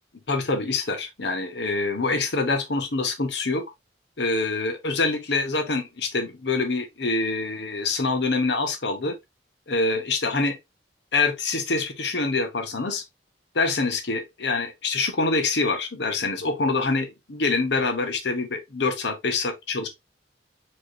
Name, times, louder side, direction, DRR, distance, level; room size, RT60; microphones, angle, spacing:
voice 1, 0.3-3.6 4.2-9.2 9.7-10.6 11.1-13.0 13.5-19.9, left 3 dB, 70° left, 1.0 m, -25 dB
4.6 x 3.1 x 2.7 m
head